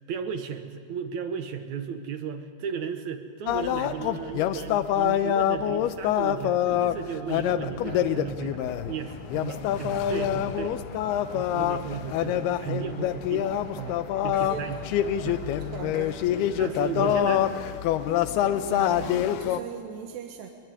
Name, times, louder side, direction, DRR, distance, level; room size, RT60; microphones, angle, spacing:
voice 1, 0.1-10.8 11.3-13.5 13.8-14.8 15.2-15.7 16.6-17.5, right 7 dB, 65° right, 8 dB, 1.9 m, -35 dB
sound 1, 3.5-19.6, left 10 dB, 80° left, 2.8 m, -26 dB
sound 2, 7.4-17.6, left 3 dB, 50° left, 3.8 m, -43 dB
voice 2, 14.4-14.8 15.7-16.3 18.7-20.5, right 8 dB, 85° right, 5 dB, 3.5 m, -39 dB
23.5 x 22.0 x 9.7 m, 2.4 s
omnidirectional pair, 4.7 m